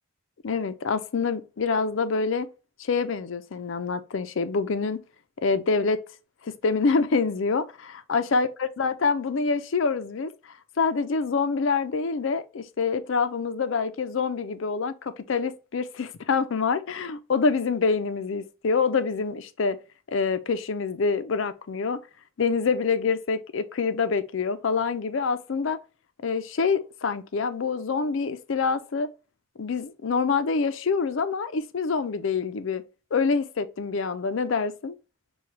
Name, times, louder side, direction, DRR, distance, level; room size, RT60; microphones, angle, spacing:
voice 1, 0.4-2.5 2.8-5.0 5.4-6.0 6.4-10.3 10.8-19.8 20.1-22.0 22.4-25.8 26.2-29.1 29.6-32.8 33.1-34.9, left 4 dB, 65° left, 0.5 m, -26 dB
5.7 x 2.3 x 3.1 m
head